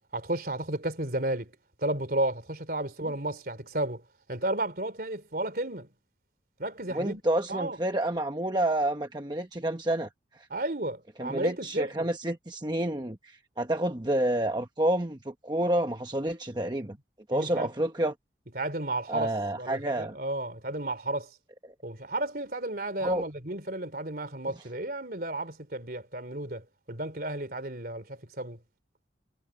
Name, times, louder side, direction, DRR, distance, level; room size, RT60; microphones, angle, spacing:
voice 1, 0.1-1.5 1.8-4.0 4.3-5.9 6.6-7.2 7.5-7.8 10.5-12.1 16.8-16.9 17.3-17.7 18.5-21.3 21.8-28.6, right 1 dB, 55° right, 3.7 m, -33 dB
voice 2, 6.9-10.1 10.3-10.5 11.2-17.0 17.3-18.1 19.1-20.1 23.0-23.2, right 1 dB, 25° right, 1.0 m, -29 dB
head